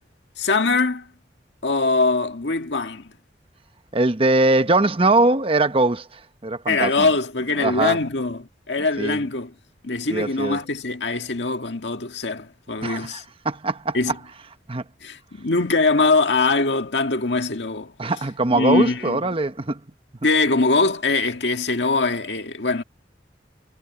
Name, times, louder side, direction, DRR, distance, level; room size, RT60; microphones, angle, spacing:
voice 1, 0.4-1.1 1.6-3.1 6.7-9.5 9.8-13.2 13.9-14.2 15.0-17.9 18.5-19.2 20.2-22.8, left 3 dB, 75° left, 1.8 m, -22 dB
voice 2, 3.9-6.1 6.4-7.1 7.6-8.0 9.0-9.2 10.1-10.6 12.8-13.2 13.4-14.0 14.7-14.8 18.0-19.8, right 2 dB, 30° right, 1.0 m, -21 dB
head